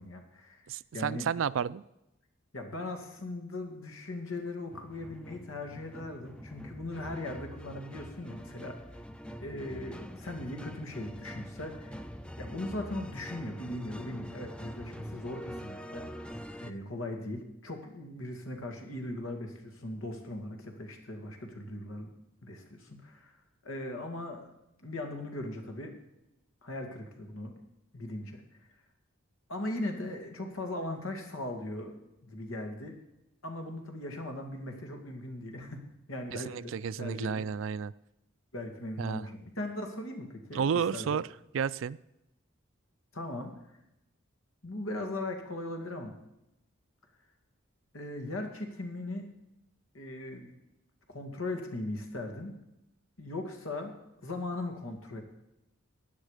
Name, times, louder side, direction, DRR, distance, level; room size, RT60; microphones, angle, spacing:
voice 1, 0.0-0.7 0.9-1.3 2.5-8.8 9.4-11.9 12.4-16.3 16.6-22.1 22.4-23.4 23.6-24.5 24.8-26.0 26.6-27.6 27.9-28.4 29.5-32.0 32.2-33.0 33.4-35.8 36.1-37.5 38.5-41.1 43.1-43.5 44.6-46.2 47.9-49.3 49.9-50.6 51.1-52.6 53.2-55.2, left 1 dB, 90° left, 4 dB, 2.2 m, -39 dB
voice 2, 0.7-1.8 36.3-37.9 39.0-39.3 40.5-41.2 41.5-42.0, right 7 dB, 75° right, 18 dB, 0.4 m, -31 dB
sound 1, 4.7-16.7, equal, 5° left, 0.4 m, -44 dB
15.5 x 9.7 x 5.0 m, 0.87 s
head